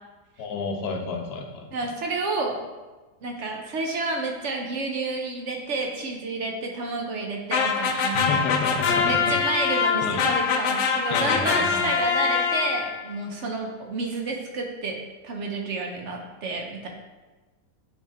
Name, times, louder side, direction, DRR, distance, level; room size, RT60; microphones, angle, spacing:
voice 1, 0.4-1.9 7.9-9.4 9.7-10.3 11.1-11.9, left 4 dB, 70° left, 3 dB, 1.3 m, -31 dB
voice 2, 1.7-2.6 3.2-8.4 8.9-16.9, right 3 dB, 60° right, 2 dB, 0.8 m, -30 dB
sound 1, 7.5-13.0, left 6 dB, 85° left, 0.6 m, -24 dB
8.7 x 3.2 x 3.5 m, 1.2 s
omnidirectional pair, 1.8 m